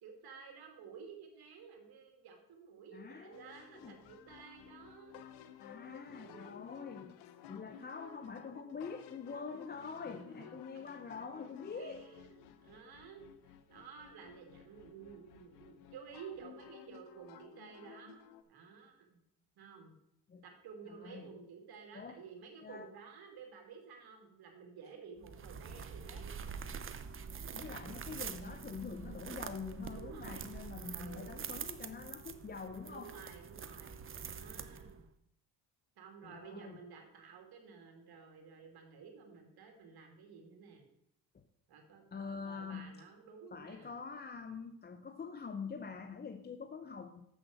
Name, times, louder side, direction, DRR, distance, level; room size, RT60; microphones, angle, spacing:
voice 1, 0.0-5.2 6.1-6.6 9.5-9.6 10.0-10.5 11.8-13.3 13.7-18.2 18.5-19.2 19.6-19.9 20.4-26.3 27.3-27.6 29.9-30.5 30.9-31.4 32.8-35.0 36.0-40.9 41.7-43.9, right 6 dB, 70° right, 4 dB, 2.5 m, -53 dB
voice 2, 2.9-4.0 5.6-7.2 7.5-12.0 20.3-20.4 20.9-21.3 21.9-22.2 22.6-22.9 27.5-33.1 36.2-36.8 41.3-41.4 42.1-43.0 43.5-47.3, left 5 dB, 25° left, 8 dB, 0.6 m, -45 dB
sound 1, 3.3-18.4, left 9 dB, 85° left, 0.9 m, -55 dB
sound 2, 25.2-35.1, right 6 dB, 30° right, 0.7 m, -45 dB
7.5 x 6.4 x 6.3 m, 0.78 s
cardioid pair, 85°, 39 cm